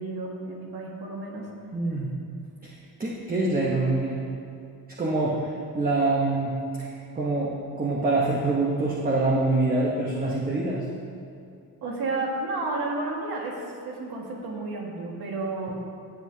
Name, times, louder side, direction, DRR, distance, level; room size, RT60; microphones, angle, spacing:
voice 1, 0.0-1.5 11.8-15.8, right 2 dB, 80° right, -1 dB, 1.9 m, -32 dB
voice 2, 1.7-2.1 2.6-2.7 3.0-4.2 5.0-5.4 5.7-6.5 6.8-10.8, right 2 dB, 25° right, -4 dB, 1.0 m, -25 dB
17.0 x 7.4 x 2.8 m, 2.5 s
cardioid pair, 140°, 37 cm